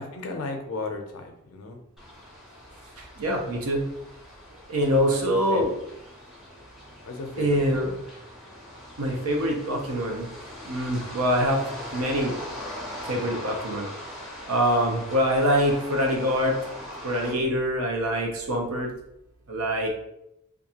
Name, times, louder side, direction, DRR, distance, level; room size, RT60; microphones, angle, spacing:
voice 1, 0.0-1.8 4.9-5.7 7.0-8.0, left 2 dB, 75° left, 3 dB, 0.5 m, -34 dB
sound 1, 2.0-17.3, equal, ahead, 0.5 m, -41 dB
voice 2, 3.0-3.8 4.7-5.7 7.4-7.9 9.0-10.3 10.6-11.6 11.9-12.3 13.0-13.9 14.5-16.5 17.0-18.9 19.5-19.9, equal, 85° right, 0 dB, 0.6 m, -24 dB
2.5 x 2.3 x 2.8 m, 0.83 s
head